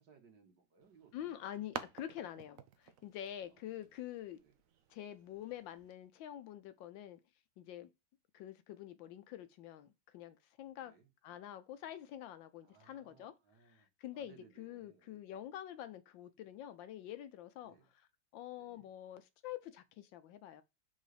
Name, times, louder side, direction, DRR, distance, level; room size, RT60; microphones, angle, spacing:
voice 1, 0.0-1.5 3.5-3.9 4.4-4.5 10.8-11.1 12.6-15.1 17.6-17.9 18.6-18.9, right 6 dB, 60° right, 1.9 m, -65 dB
sound 1, 0.8-5.9, right 8 dB, 80° right, 0.7 m, -51 dB
voice 2, 1.1-4.4 4.9-7.2 7.6-7.9 8.3-10.9 11.2-13.3 13.7-17.8 18.3-20.6, left 11 dB, 75° left, 1.2 m, -47 dB
5.4 x 4.0 x 4.8 m
omnidirectional pair, 2.2 m